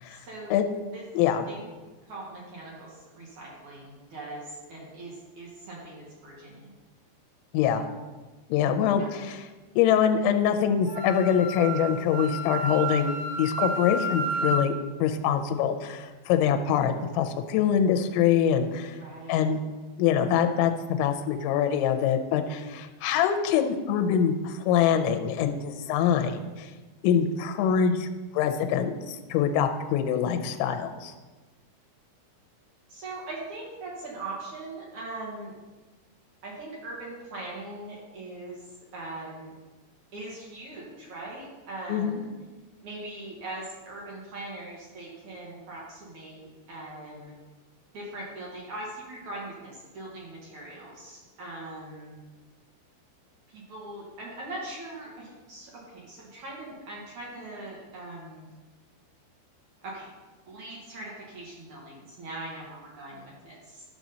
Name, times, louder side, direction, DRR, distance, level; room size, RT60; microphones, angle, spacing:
voice 1, 0.1-0.5 0.9-1.0 1.5-1.7 2.1-6.7 9.0-9.1 19.0-19.4 32.9-35.5 36.4-38.6 38.9-39.5 40.1-42.3 42.8-47.3 47.9-52.2 53.5-58.5 59.8-60.1 60.5-63.8, right 2 dB, 55° right, -5 dB, 2.4 m, -41 dB
voice 2, 7.5-7.9 8.5-9.4 9.8-14.7 15.0-19.0 19.3-19.6 20.0-26.7 27.0-28.1 28.3-31.1 41.9-42.2, left 8 dB, 85° left, 6 dB, 2.9 m, -24 dB
Wind instrument woodwind instrument, 10.9-14.6, right 2 dB, 70° right, 5.2 m, -31 dB
12.5 x 6.1 x 4.0 m, 1.2 s
omnidirectional pair, 5.3 m